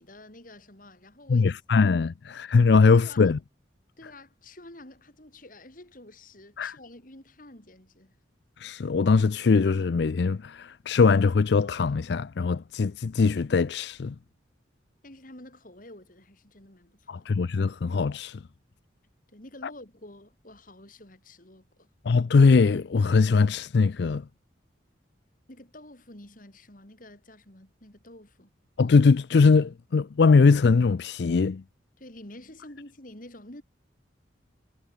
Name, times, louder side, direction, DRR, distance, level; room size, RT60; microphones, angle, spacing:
voice 1, 0.0-1.9 3.0-3.4 4.0-8.2 15.0-17.3 19.3-21.9 25.5-28.5 32.0-33.6, left 1 dB, 45° left, 3.7 m, -49 dB
voice 2, 1.3-3.4 6.6-6.8 8.6-14.2 17.1-18.4 22.0-24.3 28.8-31.6, left 4 dB, 60° left, 0.4 m, -21 dB
head